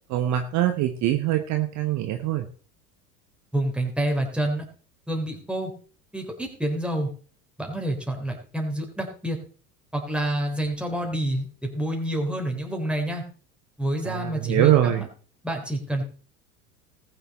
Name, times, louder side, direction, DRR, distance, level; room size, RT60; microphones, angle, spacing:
voice 1, 0.1-2.5 14.0-15.0, right 12 dB, 40° right, 6 dB, 1.2 m, -23 dB
voice 2, 3.5-4.7 5.1-5.7 6.1-7.1 7.6-9.4 9.9-13.2 13.8-15.1 15.4-16.0, right 1 dB, ahead, 1 dB, 3.7 m, -28 dB
19.5 x 6.8 x 4.3 m, 0.41 s
figure-of-eight pair, 75°, 46 cm